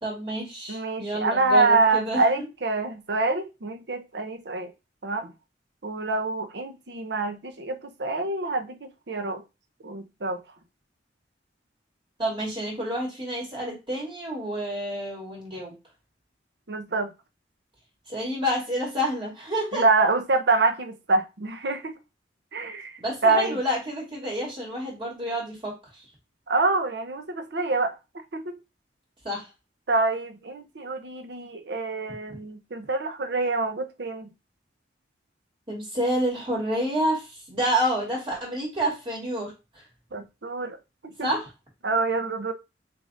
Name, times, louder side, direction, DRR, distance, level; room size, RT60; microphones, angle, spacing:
voice 1, 0.0-2.3 12.2-15.7 18.1-19.8 23.0-25.7 29.2-29.5 35.7-39.5 41.2-41.5, equal, 25° right, 2.7 m, -29 dB
voice 2, 0.7-4.7 5.0-5.3 5.8-9.4 9.8-10.4 16.7-17.1 19.7-21.9 22.5-23.6 26.5-28.0 28.3-28.4 29.9-34.3 40.1-40.8 41.0-41.3 41.8-42.5, right 3 dB, 60° right, 0.7 m, -26 dB
6.5 x 2.6 x 2.6 m
head